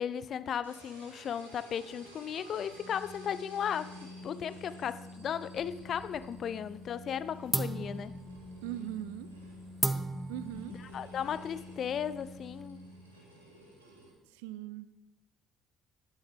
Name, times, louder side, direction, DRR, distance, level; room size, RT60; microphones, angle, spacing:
voice 1, 0.0-8.1 10.9-12.8, left 8 dB, 50° left, 0.4 m, -36 dB
sound 1, 0.6-14.1, right 2 dB, 90° right, 1.6 m, -56 dB
Organ, 2.7-13.5, left 1 dB, 75° left, 2.7 m, -49 dB
sound 2, 5.6-6.4 6.7-7.2 7.5-12.7, right 2 dB, 10° right, 0.7 m, -37 dB
voice 2, 8.6-9.3 10.3-10.8 14.3-14.9, right 13 dB, 70° right, 0.4 m, -40 dB
11.5 x 9.0 x 3.5 m
figure-of-eight pair, 50°, 0 cm